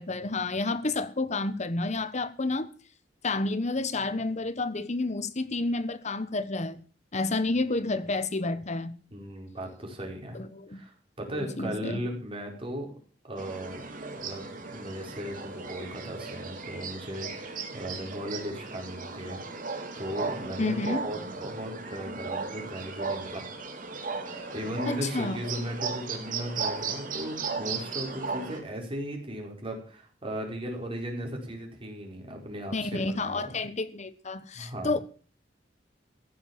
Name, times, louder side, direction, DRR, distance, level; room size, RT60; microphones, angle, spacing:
voice 1, 0.0-2.7 3.2-6.8 7.1-9.0 10.3-10.8 11.3-12.0 20.6-21.1 24.9-25.4 32.7-35.0, left 2 dB, 40° left, 1.2 m, -30 dB
voice 2, 9.1-10.4 10.7-12.9 13.2-13.8 14.2-19.4 20.0-23.5 24.2-33.6 34.5-34.9, equal, 30° right, 4.9 m, -37 dB
sound 1, 13.4-28.6, right 4 dB, 50° right, 3.3 m, -36 dB
15.0 x 9.4 x 7.4 m
head